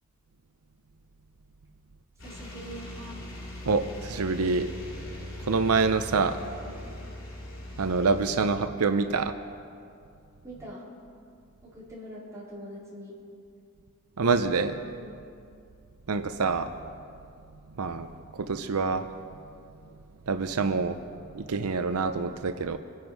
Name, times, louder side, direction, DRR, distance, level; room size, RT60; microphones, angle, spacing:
sound 1, 2.2-8.3, left 1 dB, 65° left, 3.4 m, -40 dB
voice 1, 2.2-3.0 6.6-6.9 10.4-10.9 11.6-13.2 15.0-15.2, equal, 15° right, -8 dB, 4.2 m, -43 dB
voice 2, 3.7-4.7 5.5-6.4 7.8-9.3 14.2-14.8 16.1-16.7 17.8-18.1 18.4-19.1 20.3-21.0 21.3-22.8, right 4 dB, 85° right, 9 dB, 0.6 m, -26 dB
25.0 x 10.5 x 4.6 m, 2.4 s
head